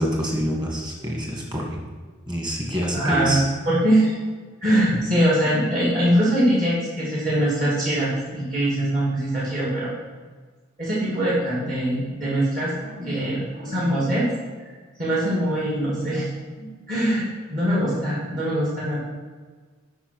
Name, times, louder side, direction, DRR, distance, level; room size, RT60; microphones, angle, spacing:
voice 1, 0.0-1.8 2.3-3.4, equal, 20° right, -1 dB, 1.9 m, -26 dB
voice 2, 2.9-3.4 3.7-4.2 4.6-9.9 10.8-14.3 15.0-16.3 16.6-19.0, right 1 dB, 40° right, -7 dB, 2.3 m, -22 dB
8.1 x 5.6 x 6.1 m, 1.4 s
head